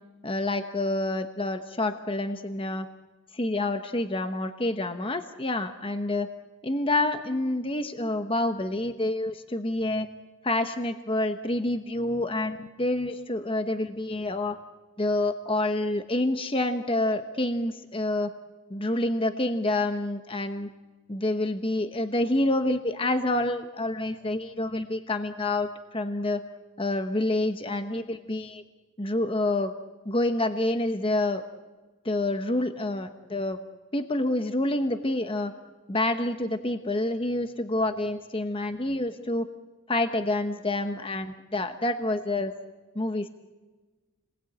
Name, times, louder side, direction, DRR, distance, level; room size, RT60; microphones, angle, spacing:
voice 1, 0.2-2.9 3.3-6.3 6.6-10.1 10.4-14.6 15.0-18.3 18.7-20.7 21.1-26.4 26.8-28.6 29.0-29.7 30.1-31.4 32.0-33.6 33.9-35.5 35.9-39.5 39.9-42.5 42.9-43.3, left 2 dB, 25° left, 8 dB, 1.0 m, -28 dB
29.5 x 20.5 x 8.8 m, 1.3 s
head